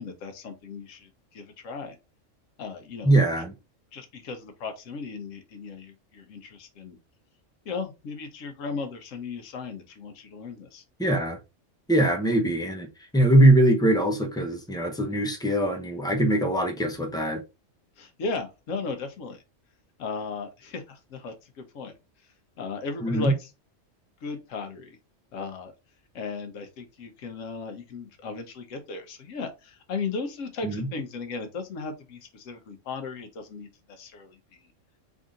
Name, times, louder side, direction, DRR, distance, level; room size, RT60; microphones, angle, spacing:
voice 1, 0.0-2.0 2.6-3.1 3.9-7.0 7.6-10.8 18.0-19.4 20.0-23.5 24.2-25.0 25.3-25.7 26.1-34.7, left 4 dB, 85° left, 1.1 m, -36 dB
voice 2, 3.0-3.5 11.0-11.4 11.9-12.9 13.1-17.4 23.0-23.3 30.6-30.8, right 1 dB, 5° left, 0.6 m, -22 dB
3.5 x 2.6 x 3.6 m
omnidirectional pair, 1.3 m